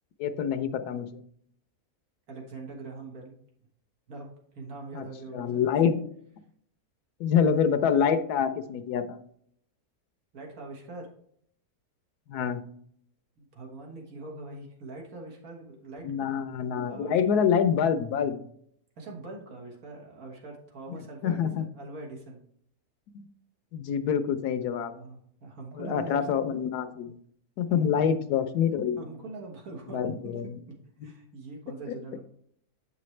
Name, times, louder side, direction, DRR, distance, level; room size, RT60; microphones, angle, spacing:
voice 1, 0.2-1.2 4.9-5.1 5.3-6.0 7.2-9.2 12.3-12.7 16.0-18.4 21.2-21.7 23.1-23.3 23.7-25.0 25.7-27.2 27.6-29.0 29.9-30.6 31.0-31.1, left 7 dB, 85° left, 11 dB, 1.2 m, -26 dB
voice 2, 2.3-3.3 4.1-5.7 10.3-11.1 13.4-16.1 16.9-17.4 19.0-22.4 24.9-26.3 27.7-28.3 29.0-30.4 30.7-30.8 31.0-32.2, right 3 dB, 70° right, 0 dB, 1.9 m, -43 dB
8.3 x 6.0 x 3.2 m, 0.67 s
omnidirectional pair, 1.6 m